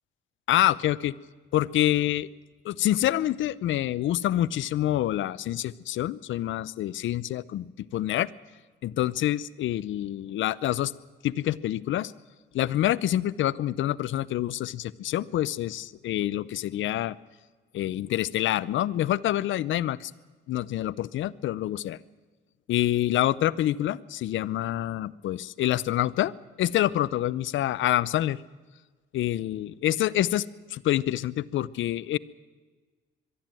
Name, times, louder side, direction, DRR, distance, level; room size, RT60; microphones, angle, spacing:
voice 1, 0.5-1.1 1.5-2.3 2.6-7.7 7.9-8.3 8.8-10.9 11.2-12.1 12.5-17.2 17.7-20.1 20.5-22.0 22.7-26.3 26.6-28.4 29.1-30.5 30.7-32.2, left 13 dB, 75° left, 19 dB, 0.7 m, -26 dB
22.5 x 12.5 x 9.1 m, 1.3 s
cardioid pair, 90°, 20 cm